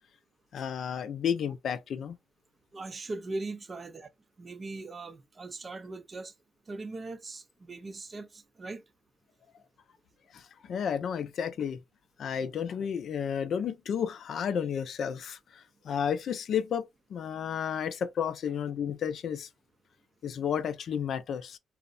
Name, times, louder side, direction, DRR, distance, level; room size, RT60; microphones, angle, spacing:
voice 1, 0.5-2.2 10.3-11.8 12.2-16.8 17.1-19.5 20.2-21.6, left 8 dB, 60° left, 0.3 m, -32 dB
voice 2, 2.7-4.1 4.4-6.3 6.7-8.8, right 3 dB, 35° right, 0.4 m, -40 dB
2.7 x 2.0 x 2.5 m
cardioid pair, 90°, 0 cm